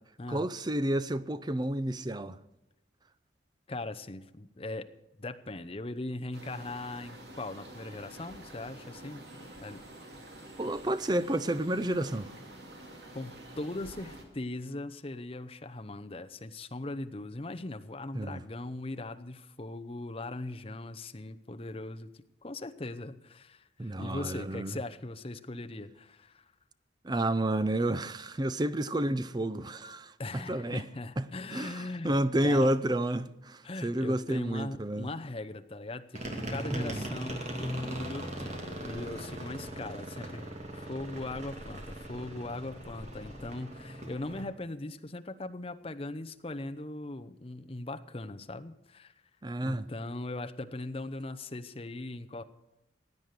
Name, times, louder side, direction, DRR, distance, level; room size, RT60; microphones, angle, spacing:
voice 1, 0.3-2.4 10.6-12.3 18.1-18.4 23.8-24.7 27.0-30.8 31.2-31.3 31.5-35.1 36.7-37.1 49.4-49.9, right 1 dB, 20° right, 0.5 m, -30 dB
voice 2, 3.7-4.9 5.2-9.8 13.1-22.1 22.4-26.4 30.2-32.2 32.4-32.7 33.6-40.4 40.7-49.1 49.6-52.4, left 2 dB, 30° left, 0.8 m, -40 dB
sound 1, 6.3-14.2, right 1 dB, 60° right, 2.8 m, -48 dB
sound 2, 36.1-44.4, right 1 dB, 35° right, 2.4 m, -40 dB
16.0 x 9.4 x 6.7 m
head